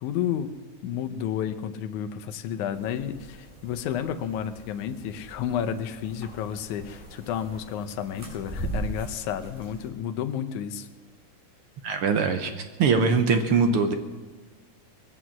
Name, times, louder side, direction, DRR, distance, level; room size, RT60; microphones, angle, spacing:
voice 1, 0.0-0.6 0.8-10.9, left 9 dB, 85° left, 7 dB, 2.2 m, -31 dB
sound 1, 2.7-9.9, right 2 dB, 15° right, 4.0 m, -40 dB
voice 2, 11.8-13.9, right 4 dB, 65° right, 7 dB, 1.5 m, -22 dB
21.5 x 8.0 x 7.4 m, 1.3 s
omnidirectional pair, 3.4 m